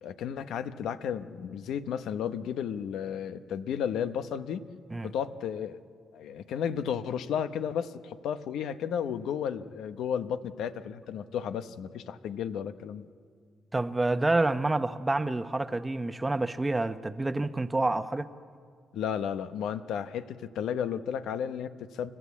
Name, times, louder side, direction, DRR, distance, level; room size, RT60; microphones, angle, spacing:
voice 1, 0.0-4.7 5.0-5.8 6.1-13.1 18.9-22.1, left 8 dB, 80° left, 11 dB, 0.8 m, -33 dB
voice 2, 13.7-18.3, right 2 dB, 20° right, 11 dB, 1.0 m, -28 dB
29.5 x 13.5 x 8.4 m, 2.1 s
cardioid pair, 70°, 0 cm